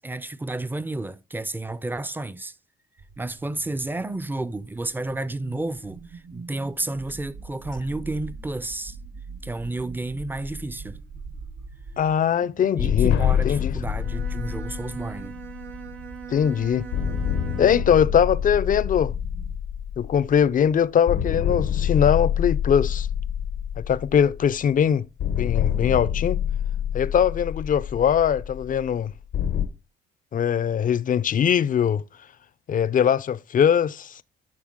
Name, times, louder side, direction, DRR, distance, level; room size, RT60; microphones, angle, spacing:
voice 1, 0.0-2.5 3.2-9.0 9.4-11.0 12.8-15.4, right 2 dB, 10° right, 0.5 m, -31 dB
sound 1, 3.0-19.6, right 4 dB, 60° right, 1.2 m, -43 dB
voice 2, 12.0-13.1 13.4-13.7 16.3-16.9 17.6-19.1 20.0-23.1 23.8-25.1 25.4-26.4 26.9-29.1 30.3-32.0 32.7-34.2, left 8 dB, 45° left, 0.5 m, -21 dB
sound 2, 12.8-16.4 16.9-20.7 21.1-24.7 25.2-29.7, left 9 dB, 85° left, 1.0 m, -27 dB
Bowed string instrument, 13.9-18.1, right 9 dB, 80° right, 0.8 m, -40 dB
11.0 x 4.3 x 3.7 m
cardioid pair, 90°, 20 cm